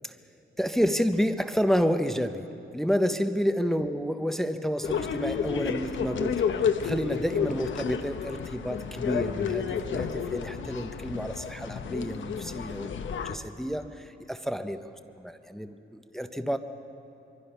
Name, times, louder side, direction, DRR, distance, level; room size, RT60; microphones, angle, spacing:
voice 1, 0.6-12.9 13.2-14.8 15.2-16.6, equal, ahead, 8 dB, 0.7 m, -29 dB
sound 1, 4.8-13.4, left 7 dB, 75° left, 1.0 m, -31 dB
24.5 x 24.0 x 5.6 m, 2.9 s
wide cardioid pair, 160°, 20 cm